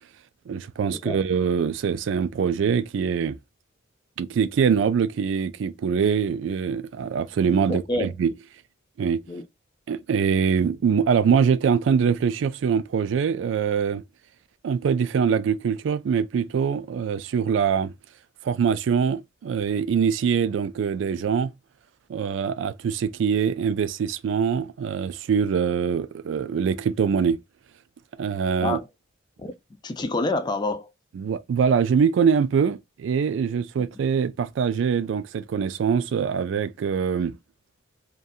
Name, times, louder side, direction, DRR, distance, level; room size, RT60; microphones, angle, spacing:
voice 1, 0.5-3.4 4.2-8.3 9.0-9.2 9.9-14.0 14.6-17.9 18.4-21.5 22.1-27.4 28.2-28.8 31.1-37.3, right 6 dB, 65° right, 0.3 m, -23 dB
voice 2, 7.7-8.1 9.3-9.4 28.6-28.9 29.4-29.5 29.8-30.9, left 2 dB, 20° left, 0.4 m, -27 dB
2.7 x 2.2 x 2.3 m
head